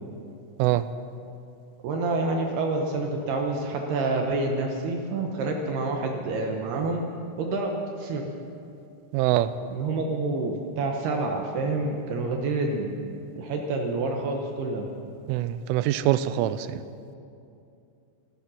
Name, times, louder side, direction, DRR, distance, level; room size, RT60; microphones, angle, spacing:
voice 1, 1.8-7.0 7.4-7.7 8.0-8.3 9.7-13.0 13.4-14.9, right 3 dB, 70° right, 1 dB, 2.7 m, -28 dB
voice 2, 9.1-9.5 15.3-16.8, right 13 dB, 90° right, 13 dB, 3.1 m, -24 dB
15.0 x 15.0 x 6.3 m, 2.6 s
omnidirectional pair, 5.5 m